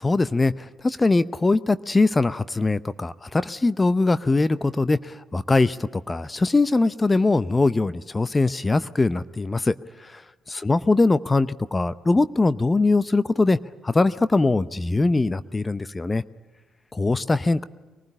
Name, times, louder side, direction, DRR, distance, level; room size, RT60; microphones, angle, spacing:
voice 1, 0.0-9.7 10.0-10.2 10.5-13.6 13.8-16.2 16.9-17.7, left 3 dB, 25° left, 15 dB, 0.7 m, -22 dB
23.5 x 19.5 x 9.9 m, 1.2 s
hypercardioid pair, 45°, 0 cm